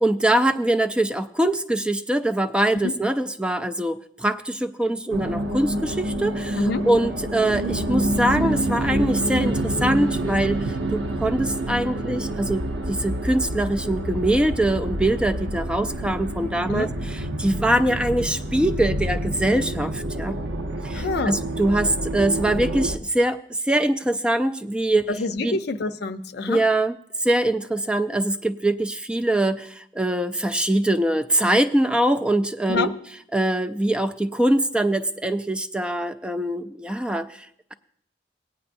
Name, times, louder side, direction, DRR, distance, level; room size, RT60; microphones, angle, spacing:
voice 1, 0.0-20.4 20.8-25.1 25.4-25.6 26.5-26.9 27.2-32.9 33.3-37.5, right 1 dB, 5° right, 9 dB, 0.3 m, -23 dB
sound 1, 5.1-23.0, right 1 dB, 80° right, 0.8 m, -27 dB
voice 2, 20.9-21.5 25.1-26.6 32.7-32.9, left 3 dB, 65° left, 9 dB, 0.6 m, -26 dB
18.5 x 9.5 x 2.6 m, 0.67 s
head